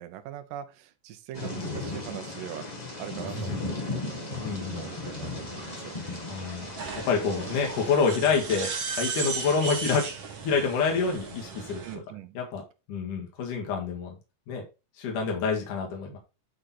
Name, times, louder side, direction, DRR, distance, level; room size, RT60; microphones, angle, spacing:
voice 1, 0.0-2.7 3.0-5.9 7.3-7.5 11.8-12.4, right 11 dB, 80° right, 2.5 m, -42 dB
Thunder / Rain, 1.3-8.0, left 2 dB, 45° left, 0.5 m, -36 dB
sound 1, 4.3-11.9, right 5 dB, 50° right, 2.3 m, -37 dB
voice 2, 4.4-4.9 6.3-6.6 7.1-10.1 10.4-12.0 12.3-12.6 12.9-14.2 14.5-14.6 15.0-16.2, left 5 dB, 70° left, 3.2 m, -27 dB
9.8 x 3.9 x 4.2 m
omnidirectional pair, 3.8 m